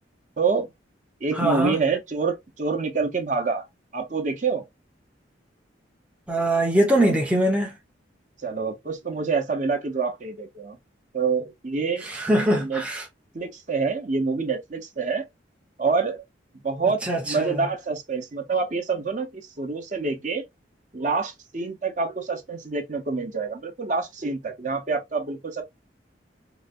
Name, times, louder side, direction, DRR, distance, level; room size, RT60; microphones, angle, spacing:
voice 1, 0.4-0.7 1.2-3.7 3.9-4.6 8.4-10.8 11.1-12.1 12.6-12.8 13.3-15.2 15.8-16.2 16.6-20.4 20.9-25.6, right 4 dB, 40° right, 0.7 m, -26 dB
voice 2, 1.4-1.8 6.3-7.7 12.1-13.0 17.0-17.5, right 1 dB, 5° right, 0.6 m, -22 dB
3.9 x 2.2 x 2.4 m
head